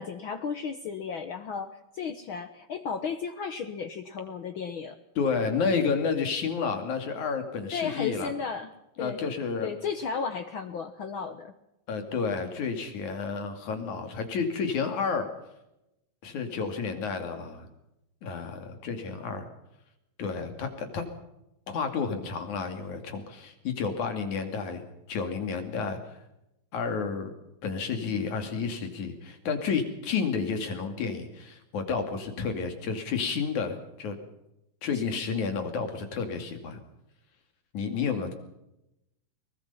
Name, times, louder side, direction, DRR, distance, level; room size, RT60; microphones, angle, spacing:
voice 1, 0.0-5.0 7.7-8.7 9.0-9.2 9.6-11.5, left 6 dB, 90° left, 8 dB, 1.1 m, -34 dB
voice 2, 5.2-8.3 9.0-9.7 11.9-15.3 16.2-17.7 18.2-19.5 20.2-21.1 21.7-24.8 25.1-26.2 26.7-27.3 27.6-34.2 34.8-36.8 37.7-38.3, left 5 dB, 60° left, 6 dB, 3.8 m, -31 dB
23.5 x 19.5 x 5.7 m, 0.88 s
omnidirectional pair, 3.9 m